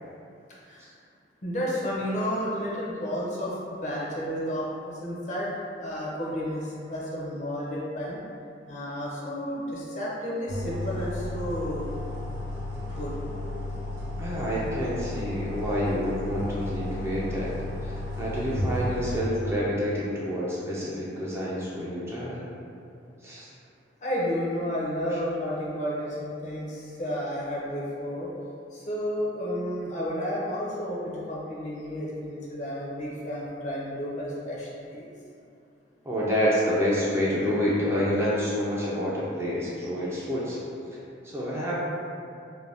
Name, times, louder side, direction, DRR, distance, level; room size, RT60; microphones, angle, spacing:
voice 1, 1.4-5.5 5.8-8.2 8.7-11.8 12.9-13.1 24.0-26.2 26.4-28.3 28.7-35.1, equal, 40° left, -6 dB, 0.5 m, -31 dB
sound 1, 10.5-19.2, left 1 dB, 70° right, 0.8 m, -33 dB
voice 2, 14.2-17.5 17.8-22.4 23.2-23.5 25.1-25.2 36.0-40.6 41.2-41.8, equal, 15° right, -7 dB, 0.3 m, -28 dB
2.5 x 2.1 x 3.3 m, 2.5 s
head